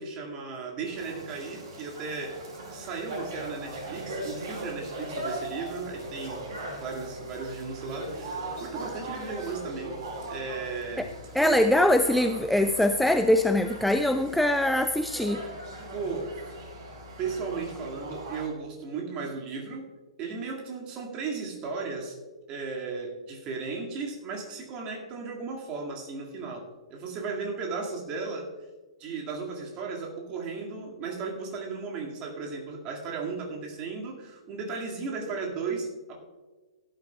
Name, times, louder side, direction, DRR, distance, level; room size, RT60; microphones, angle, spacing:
voice 1, 0.0-2.4 2.7-10.0 10.3-11.1 11.4-11.7 15.5-15.6 15.9-16.4 17.2-19.9 20.2-22.2 22.5-28.5 29.0-36.2, right 4 dB, 25° right, 0 dB, 2.1 m, -35 dB
sound 1, 0.8-18.5, right 1 dB, 45° right, 4.1 m, -39 dB
voice 2, 11.3-15.4, left 1 dB, ahead, 8 dB, 0.3 m, -23 dB
16.5 x 11.5 x 2.3 m, 1.3 s
figure-of-eight pair, 115°, 3 cm